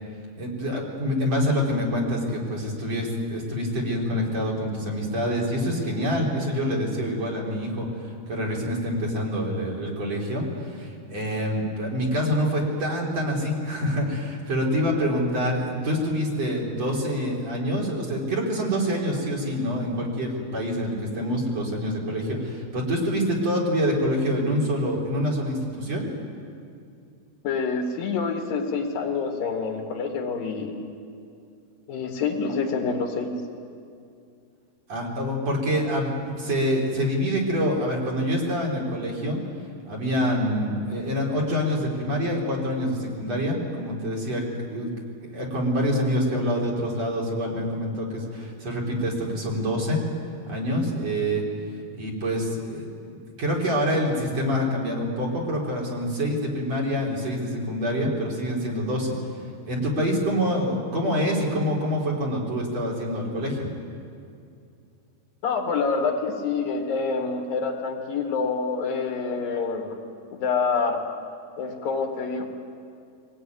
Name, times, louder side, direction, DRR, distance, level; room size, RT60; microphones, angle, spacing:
voice 1, 0.4-7.9 8.3-26.1 34.9-39.4 39.9-44.9 45.3-50.0 50.5-51.4 52.0-59.2 59.7-63.7, equal, 45° right, -3 dB, 4.7 m, -26 dB
voice 2, 27.4-30.7 31.9-33.3 65.4-70.0 70.3-71.0 71.6-72.5, left 5 dB, 70° left, 2 dB, 3.7 m, -27 dB
23.5 x 18.5 x 9.5 m, 2.4 s
omnidirectional pair, 4.3 m